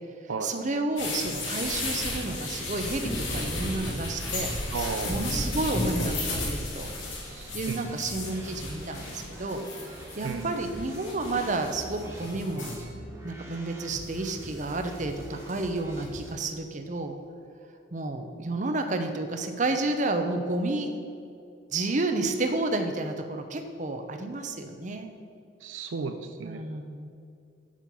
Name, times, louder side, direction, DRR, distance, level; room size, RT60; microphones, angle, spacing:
voice 1, 0.4-4.5 5.1-6.9 7.5-9.6 10.2-12.7 13.2-17.2 17.9-20.9 21.7-25.1 26.4-27.1, right 2 dB, 40° right, 6 dB, 0.7 m, -31 dB
sound 1, 1.0-12.8, left 2 dB, 90° left, 2.1 m, -34 dB
sound 2, 2.1-16.3, right 1 dB, 15° right, 1.5 m, -44 dB
voice 2, 4.7-5.1 7.2-8.2 10.2-10.6 25.6-26.6, right 4 dB, 85° right, 7 dB, 0.5 m, -34 dB
7.4 x 5.7 x 6.9 m, 2.5 s
head